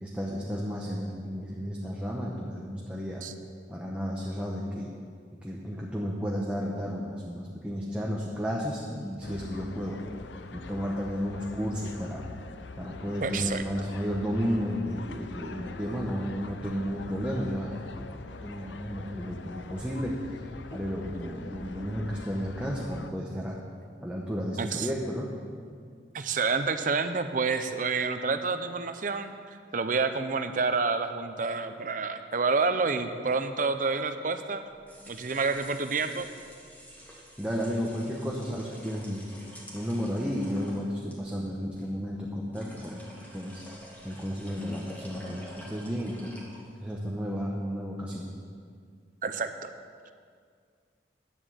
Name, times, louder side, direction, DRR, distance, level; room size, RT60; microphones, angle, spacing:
voice 1, 0.0-3.3 3.7-4.9 5.4-10.0 10.5-12.2 12.8-18.1 18.4-20.1 20.7-23.6 24.0-25.3 37.4-39.2 39.7-43.0 43.3-43.6 44.0-46.3 46.8-48.3, equal, 5° right, -3 dB, 1.0 m, -33 dB
sound 1, 9.2-23.1, left 3 dB, 85° left, 0.6 m, -44 dB
voice 2, 13.2-13.6 24.6-24.9 26.1-29.3 29.7-34.6 35.1-36.3 49.2-49.7, right 4 dB, 45° right, 9 dB, 0.7 m, -28 dB
sound 2, 34.7-47.0, equal, 10° left, 2.0 m, -49 dB
10.0 x 7.9 x 7.9 m, 2.1 s
head